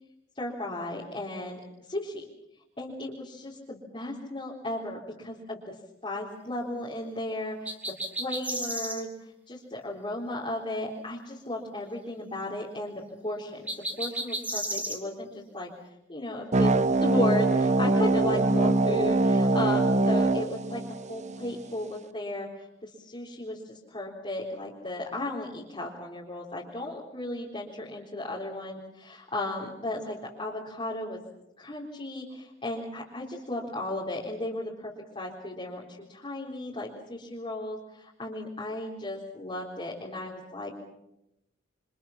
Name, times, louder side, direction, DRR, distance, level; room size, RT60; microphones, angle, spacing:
voice 1, 0.3-1.6 1.9-2.2 2.8-5.7 6.0-7.7 8.2-9.1 9.5-13.7 14.0-15.7 16.1-16.7 17.0-20.8 21.1-31.2 31.6-40.7, left 1 dB, 30° left, -5 dB, 3.9 m, -35 dB
sound 1, 7.7-9.0 13.7-15.0, right 1 dB, 10° right, 2.7 m, -33 dB
sound 2, 16.5-21.5, right 2 dB, 35° right, 0.9 m, -23 dB
28.0 x 25.5 x 5.8 m, 0.87 s
head